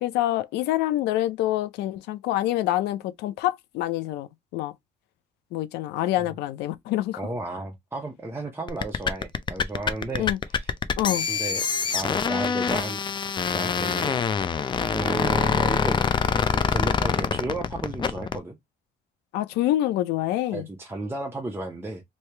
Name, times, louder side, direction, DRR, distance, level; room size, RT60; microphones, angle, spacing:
voice 1, 0.0-4.3 4.5-4.7 5.5-7.2 10.2-10.4 11.0-11.3 19.3-20.7, left 14 dB, 85° left, 0.5 m, -26 dB
voice 2, 7.2-10.7 11.3-11.6 11.9-13.0 13.5-14.3 14.9-16.0 16.5-18.6 20.5-22.0, right 2 dB, 15° right, 0.6 m, -33 dB
sound 1, 8.7-18.4, left 6 dB, 25° left, 0.4 m, -25 dB
3.2 x 2.8 x 3.2 m
cardioid pair, 110°, 17 cm